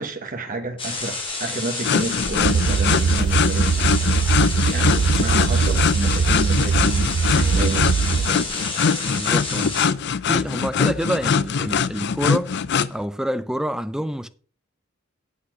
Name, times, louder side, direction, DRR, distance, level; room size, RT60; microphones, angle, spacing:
voice 1, 0.0-4.1 4.6-8.5 11.6-11.7, right 2 dB, 40° right, 1.3 m, -30 dB
sound 1, 0.8-9.9, left 3 dB, 25° left, 3.0 m, -30 dB
sound 2, 1.8-12.9, left 6 dB, 55° left, 0.5 m, -22 dB
sound 3, 2.4-8.3, right 5 dB, 75° right, 0.5 m, -21 dB
voice 2, 9.1-9.8 10.3-12.5 12.9-14.3, equal, 5° right, 0.5 m, -27 dB
8.5 x 8.2 x 4.9 m
head